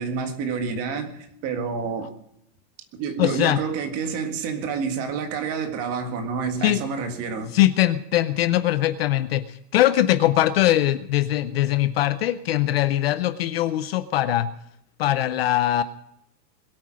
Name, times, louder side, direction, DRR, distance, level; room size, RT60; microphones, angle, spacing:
voice 1, 0.0-2.1 3.0-7.5, right 5 dB, 30° right, 1.8 m, -28 dB
voice 2, 3.2-3.6 6.6-6.8 7.5-14.5 15.0-15.8, left 13 dB, 40° left, 0.5 m, -21 dB
21.0 x 8.8 x 6.2 m
supercardioid pair, 165°, 50 cm